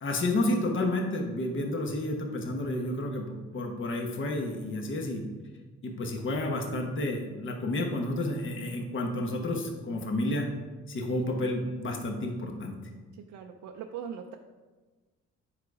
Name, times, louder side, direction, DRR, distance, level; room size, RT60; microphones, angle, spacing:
voice 1, 0.0-5.2 5.8-10.5 10.9-12.8, left 1 dB, 40° left, 2 dB, 1.2 m, -30 dB
voice 2, 13.1-14.4, right 8 dB, 80° right, 3 dB, 0.6 m, -40 dB
7.7 x 5.0 x 4.7 m, 1.3 s
cardioid pair, 90°, 30 cm